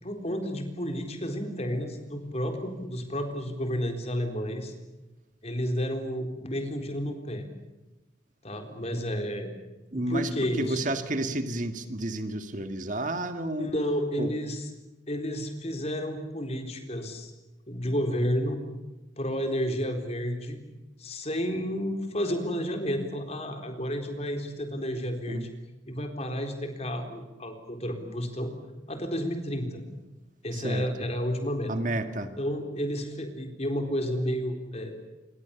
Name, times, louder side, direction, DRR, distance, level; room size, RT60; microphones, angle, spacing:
voice 1, 0.0-4.7 5.4-7.5 8.4-9.5 9.9-10.8 13.6-14.7 15.1-17.3 17.7-18.6 19.2-20.6 21.0-25.5 25.9-28.5 28.9-29.8 30.4-31.7 32.4-35.0, equal, 35° left, 6 dB, 4.0 m, -31 dB
voice 2, 9.9-13.7 14.2-14.3 25.3-25.5 30.5-30.9 31.7-32.3, right 1 dB, 40° right, 8 dB, 1.9 m, -31 dB
28.5 x 23.5 x 7.2 m, 1.1 s
head